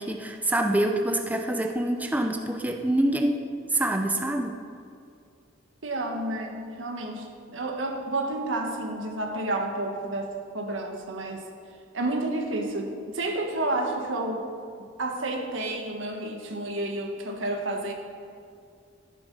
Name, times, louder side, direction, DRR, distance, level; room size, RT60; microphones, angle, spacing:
voice 1, 0.0-4.6, right 1 dB, 10° right, 4 dB, 0.6 m, -26 dB
voice 2, 5.8-11.4 11.9-14.5 15.0-17.9, right 2 dB, 75° right, 3 dB, 1.7 m, -30 dB
13.5 x 11.0 x 5.5 m, 2.4 s
head